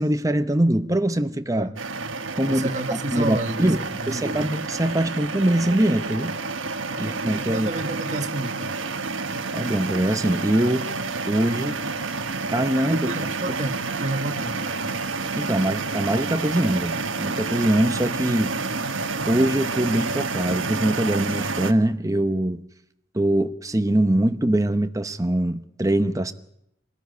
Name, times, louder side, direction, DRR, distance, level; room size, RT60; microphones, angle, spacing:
voice 1, 0.0-1.7 2.3-3.8 4.1-6.3 7.0-7.7 9.5-10.9 11.3-11.8 12.5-13.1 13.5-13.6 15.3-18.5 19.3-22.6 23.1-26.3, right 1 dB, 15° right, 0.8 m, -23 dB
sound 1, 1.8-21.7, right 4 dB, 75° right, 1.3 m, -29 dB
voice 2, 2.4-4.5 6.9-7.1 7.3-8.8 12.9-14.9, right 1 dB, 35° right, 1.8 m, -30 dB
24.0 x 13.5 x 9.4 m
head